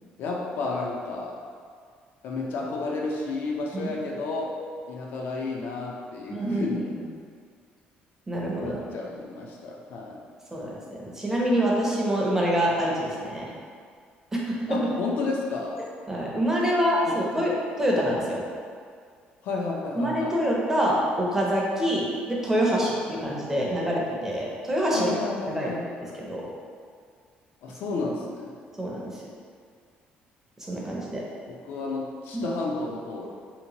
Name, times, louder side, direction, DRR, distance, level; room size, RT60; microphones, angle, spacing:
voice 1, 0.2-1.4 2.2-4.6 4.9-6.9 8.6-10.2 14.7-15.8 17.1-17.5 19.4-20.3 24.9-26.3 27.6-28.5 31.5-33.3, left 3 dB, 70° left, -1 dB, 0.4 m, -32 dB
voice 2, 6.3-6.7 8.3-8.8 10.5-13.5 14.3-14.6 16.1-17.5 17.8-18.4 20.0-25.1 25.5-25.7 26.2-26.4 28.8-29.1 30.7-31.2 32.3-32.4, equal, 10° right, -4 dB, 0.5 m, -26 dB
2.8 x 2.2 x 2.8 m, 2.1 s
cardioid pair, 125°, 4 cm